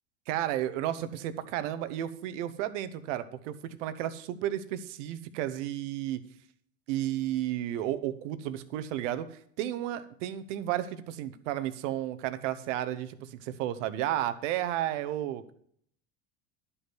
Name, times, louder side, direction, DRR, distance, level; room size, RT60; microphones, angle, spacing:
voice 1, 0.3-6.2 6.9-15.5, right 12 dB, 75° right, 12 dB, 0.9 m, -33 dB
11.0 x 5.6 x 6.1 m, 0.64 s
hypercardioid pair, 80°, 37 cm